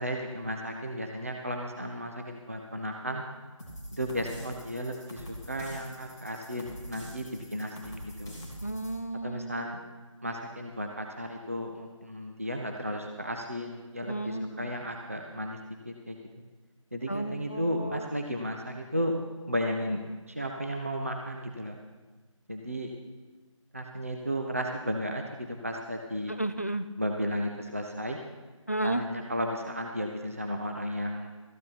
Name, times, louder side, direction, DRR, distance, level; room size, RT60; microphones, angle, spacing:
voice 1, 0.0-3.2 3.9-8.3 9.2-9.8 10.2-15.6 15.9-16.2 16.9-19.2 19.5-21.8 22.5-22.9 23.7-26.3 27.0-28.2 28.8-31.3, equal, 25° right, 3 dB, 0.7 m, -34 dB
sound 1, 3.6-8.9, equal, 5° left, 0.9 m, -44 dB
voice 2, 8.6-9.7 14.1-14.7 17.1-18.1 26.4-26.9 28.7-29.0, right 1 dB, 25° left, 11 dB, 0.4 m, -33 dB
14.0 x 9.4 x 5.7 m, 1.3 s
figure-of-eight pair, 170°, 17 cm